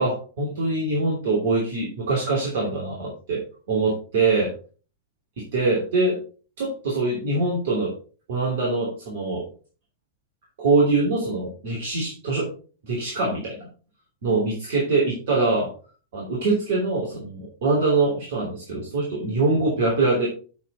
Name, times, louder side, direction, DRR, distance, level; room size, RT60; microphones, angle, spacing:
voice 1, 0.0-4.5 5.4-6.2 6.6-7.9 8.3-9.4 10.6-12.5 12.8-13.7 14.2-15.7 16.1-20.3, right 3 dB, 55° right, -2 dB, 3.0 m, -23 dB
7.7 x 7.2 x 4.2 m, 0.39 s
figure-of-eight pair, 90°, 0 cm